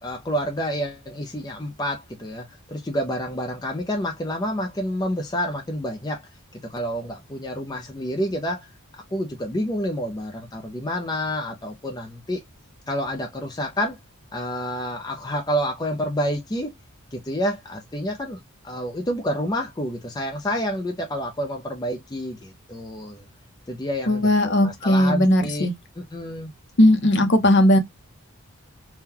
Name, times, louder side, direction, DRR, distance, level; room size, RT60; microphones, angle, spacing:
voice 1, 0.0-6.3 6.7-8.7 8.9-12.4 12.9-14.0 14.3-16.8 17.1-23.2 23.7-25.7 26.0-26.5, equal, 20° left, 0.5 m, -29 dB
voice 2, 24.1-25.7 26.8-27.8, left 1 dB, 50° left, 0.7 m, -17 dB
3.7 x 2.3 x 2.7 m
head